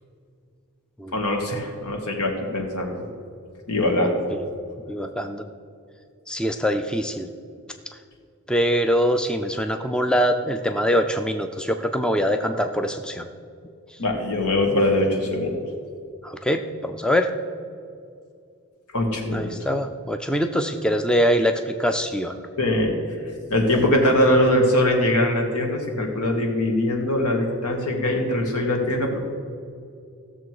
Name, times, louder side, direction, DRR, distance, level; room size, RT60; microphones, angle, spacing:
voice 1, 1.1-3.1 3.7-4.2 14.0-15.6 18.9-19.5 22.6-22.9 23.5-29.2, left 1 dB, 85° left, 1 dB, 2.0 m, -22 dB
voice 2, 4.9-5.5 6.3-7.3 8.5-13.3 13.9-14.0 16.2-17.3 19.3-22.4, equal, 5° left, 6 dB, 0.4 m, -23 dB
16.5 x 6.8 x 4.8 m, 2.4 s
head